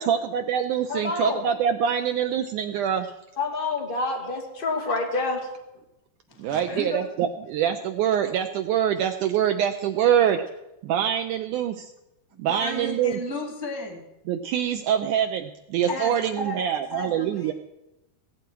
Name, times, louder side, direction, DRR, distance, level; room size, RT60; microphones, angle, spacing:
voice 1, 0.0-3.1 6.4-10.4 10.8-11.9 12.4-13.2 14.3-17.5, right 9 dB, 90° right, 6 dB, 1.7 m, -25 dB
voice 2, 0.9-1.5 3.4-5.4, left 3 dB, 20° left, 0 dB, 1.7 m, -27 dB
voice 3, 6.3-7.0 12.3-14.0 15.9-16.6 16.9-17.5, left 1 dB, 20° right, -1 dB, 0.6 m, -34 dB
16.5 x 15.5 x 4.6 m, 0.92 s
omnidirectional pair, 4.4 m